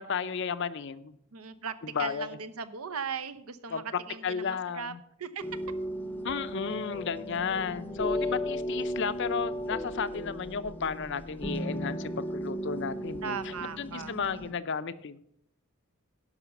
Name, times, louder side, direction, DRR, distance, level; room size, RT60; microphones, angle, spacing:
voice 1, 0.0-1.1 1.9-2.4 3.7-3.8 4.2-5.0 6.2-13.4 13.8-15.2, left 6 dB, 55° left, 14 dB, 0.5 m, -33 dB
voice 2, 1.3-4.9 5.2-5.4 7.8-8.4 13.2-14.1, right 6 dB, 80° right, 12 dB, 0.8 m, -38 dB
sound 1, 5.4-14.5, equal, 10° left, 0.7 m, -35 dB
11.0 x 5.7 x 6.9 m, 0.74 s
head